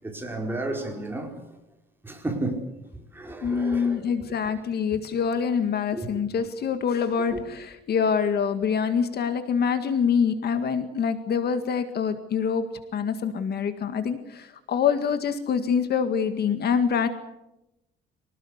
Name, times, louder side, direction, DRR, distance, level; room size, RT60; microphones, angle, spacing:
voice 1, 0.0-1.6 2.0-2.6 3.1-4.3 5.9-6.1 7.2-7.4, right 2 dB, 10° right, 4.9 m, -33 dB
voice 2, 3.4-17.1, left 6 dB, 50° left, 1.9 m, -25 dB
25.5 x 18.5 x 8.2 m
cardioid pair, 160°, 21 cm